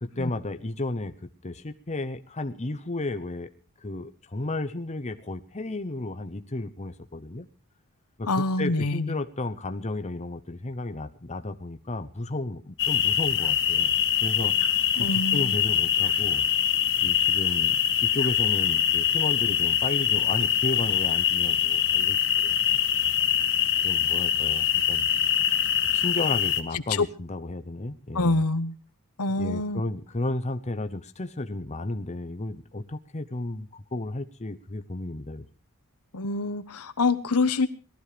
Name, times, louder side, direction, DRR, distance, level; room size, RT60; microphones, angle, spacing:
voice 1, 0.0-3.5 3.8-7.5 8.2-13.9 14.2-14.5 15.0-16.5 17.0-22.5 23.6-25.1 25.9-28.4 29.4-35.5, left 2 dB, 30° left, 8 dB, 0.9 m, -33 dB
voice 2, 8.3-9.1 15.0-15.5 26.9-27.1 28.1-28.7 29.2-29.8 36.1-37.7, left 3 dB, 80° left, 10 dB, 1.1 m, -26 dB
sound 1, 12.8-26.6, left 10 dB, 60° left, 1.5 m, -24 dB
19.0 x 13.0 x 5.0 m, 0.37 s
head